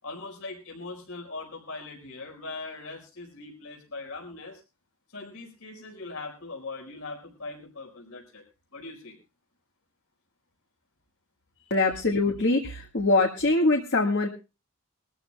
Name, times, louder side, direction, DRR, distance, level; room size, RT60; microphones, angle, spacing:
voice 1, 0.0-4.6 5.1-8.4 8.7-9.2 11.6-11.7, left 3 dB, 75° left, 1 dB, 4.8 m, -40 dB
voice 2, 11.7-14.3, left 2 dB, 55° left, 2 dB, 1.6 m, -23 dB
23.5 x 13.5 x 2.2 m, 0.30 s
head